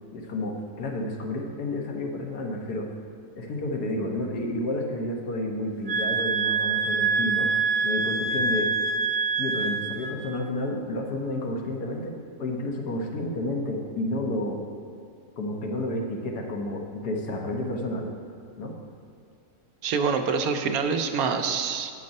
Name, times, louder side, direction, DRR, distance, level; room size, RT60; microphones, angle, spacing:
voice 1, 0.1-2.9 3.4-7.5 7.8-8.7 9.4-12.1 12.4-14.6 15.4-18.1 18.6-18.8, left 1 dB, 85° left, 1 dB, 1.6 m, -30 dB
sound 1, 5.9-10.2, right 4 dB, 45° right, 1.1 m, -25 dB
voice 2, 19.8-21.9, right 5 dB, 75° right, 6 dB, 1.1 m, -26 dB
8.7 x 6.7 x 5.3 m, 2.2 s
omnidirectional pair, 1.6 m